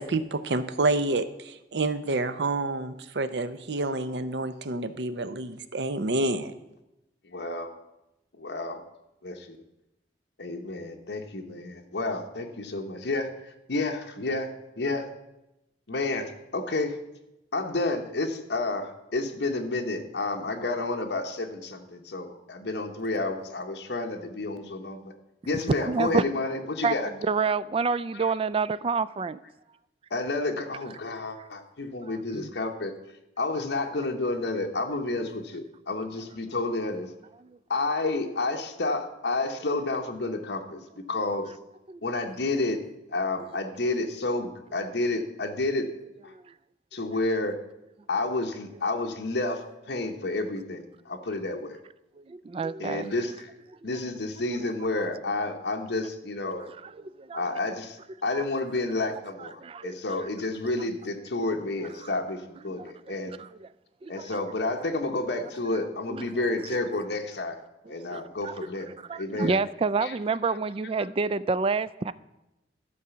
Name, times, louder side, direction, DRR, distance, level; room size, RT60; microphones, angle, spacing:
voice 1, 0.0-6.5, right 2 dB, 70° right, 12 dB, 0.7 m, -28 dB
voice 2, 7.2-7.7 8.4-8.8 9.2-9.6 10.4-14.5 14.8-15.1 15.9-17.0 17.5-25.1 25.5-27.1 28.1-28.2 30.1-32.9 33.4-37.1 37.7-40.8 41.1-41.5 42.0-42.8 43.1-45.9 46.2-46.3 46.9-47.6 48.1-49.6 49.9-51.8 52.8-53.5 53.8-56.7 57.3-63.4 64.1-67.6 67.9-69.6 70.0-70.1, left 2 dB, 75° left, 4 dB, 1.0 m, -30 dB
voice 3, 25.7-26.2 26.8-27.0 27.2-29.4 32.1-32.5 37.4-37.6 41.9-42.0 46.3-46.4 47.1-47.2 52.2-53.1 55.0-55.1 56.6-57.5 58.3-58.4 59.4-60.0 62.0-62.1 62.8-62.9 63.4-63.7 64.0-64.4 66.1-66.3 67.9-68.5 69.0-72.1, right 4 dB, 30° right, 16 dB, 0.3 m, -29 dB
12.0 x 4.9 x 6.9 m, 0.93 s
head